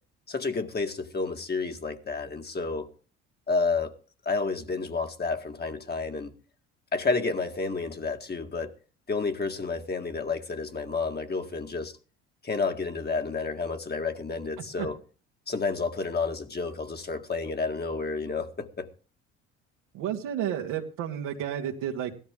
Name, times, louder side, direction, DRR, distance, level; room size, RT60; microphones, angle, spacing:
voice 1, 0.3-2.9 3.5-4.0 4.3-6.3 6.9-8.7 9.1-11.9 12.4-15.0 15.5-18.9, left 4 dB, 30° left, 2.0 m, -30 dB
voice 2, 19.9-22.1, right 10 dB, 75° right, 2.0 m, -31 dB
16.5 x 13.0 x 3.8 m
supercardioid pair, 75°, 32 cm